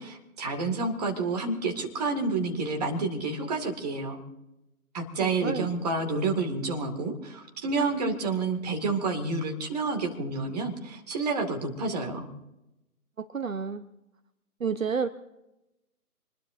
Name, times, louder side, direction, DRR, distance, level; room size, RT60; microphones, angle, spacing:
voice 1, 0.0-4.2 4.9-12.3, right 3 dB, 25° right, 3 dB, 2.2 m, -29 dB
voice 2, 5.2-5.7 13.2-13.8 14.6-15.1, right 6 dB, 60° right, 11 dB, 0.9 m, -30 dB
26.0 x 20.5 x 2.7 m, 0.93 s
figure-of-eight pair, 145°, 45 cm